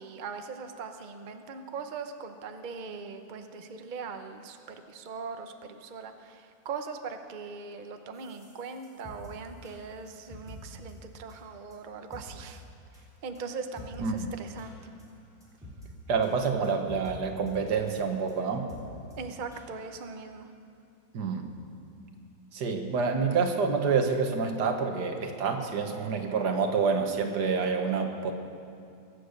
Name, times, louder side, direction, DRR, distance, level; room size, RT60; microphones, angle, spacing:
voice 1, 0.0-12.6 13.2-14.7 19.2-20.5, right 5 dB, 85° right, 6 dB, 0.4 m, -40 dB
sound 1, 8.1-10.6 10.9-11.0 11.3-11.4 11.7-11.8 12.1-12.2 12.5-12.6 12.9-13.0 13.3-13.4 13.8-14.2 14.6-14.7 15.0-15.1 15.4-15.9 16.2-16.4 16.6-17.2 17.5-17.6 17.9-18.0 18.3-18.4 18.7-18.8 19.1-19.2 19.5-19.6 19.9-20.0 20.4-20.5, left 1 dB, ahead, 3.3 m, -47 dB
voice 2, 16.1-18.7 21.1-21.5 22.5-28.3, right 5 dB, 60° right, 5 dB, 1.7 m, -28 dB
22.5 x 8.5 x 6.6 m, 2.5 s
omnidirectional pair, 2.2 m